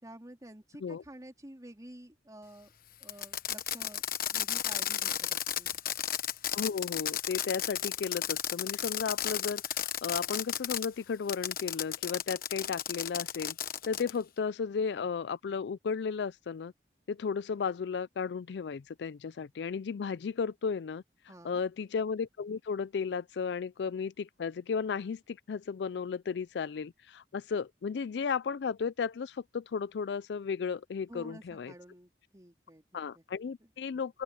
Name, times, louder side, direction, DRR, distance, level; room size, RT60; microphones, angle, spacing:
voice 1, 0.0-2.7 3.0-4.0 4.3-5.7 21.3-21.6 31.1-33.2, right 1 dB, 20° right, 3.8 m, -50 dB
Fireworks, 3.0-10.9 11.3-14.2, left 10 dB, 55° left, 1.2 m, -34 dB
voice 2, 6.5-13.6 13.9-16.7 17.1-21.0 21.4-31.7 32.9-34.2, left 6 dB, 70° left, 0.4 m, -34 dB
open air
head